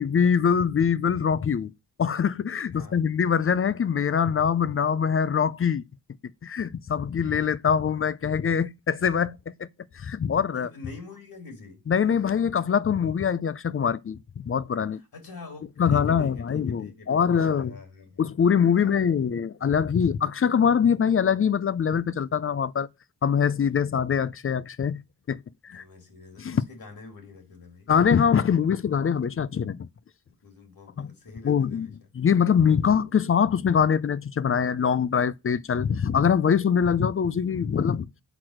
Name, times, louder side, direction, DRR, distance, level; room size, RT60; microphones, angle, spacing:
voice 1, 0.0-1.7 2.0-5.8 6.4-9.7 9.9-10.7 11.9-15.0 15.8-17.8 18.2-22.9 23.2-25.0 25.3-25.8 26.4-26.6 27.9-29.9 31.0-31.1 31.4-31.9 32.1-38.1, left 7 dB, 35° left, 0.5 m, -23 dB
voice 2, 10.5-11.8 15.1-18.2 18.7-19.1 25.7-27.9 29.5-29.7 30.3-31.9, left 4 dB, 70° left, 2.7 m, -45 dB
6.1 x 4.5 x 6.3 m
cardioid pair, 70°, 37 cm